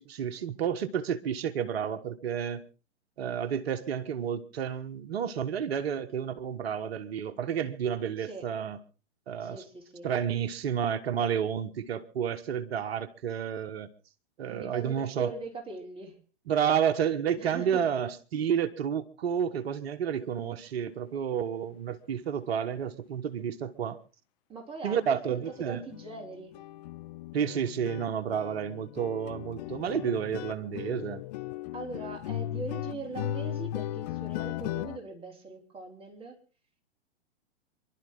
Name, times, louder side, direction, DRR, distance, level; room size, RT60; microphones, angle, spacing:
voice 1, 0.0-2.7 3.2-8.8 9.3-9.6 10.0-13.9 14.4-15.3 16.5-24.0 24.8-25.8 27.3-31.2, right 8 dB, 55° right, 1.4 m, -30 dB
voice 2, 9.4-10.1 14.5-16.2 17.4-17.8 24.5-26.5 31.7-36.4, right 3 dB, 15° right, 4.1 m, -41 dB
sound 1, 25.0-25.1 25.4-25.6 25.9-35.0, left 13 dB, 35° left, 0.7 m, -37 dB
28.0 x 12.0 x 3.8 m
figure-of-eight pair, 115°, 36 cm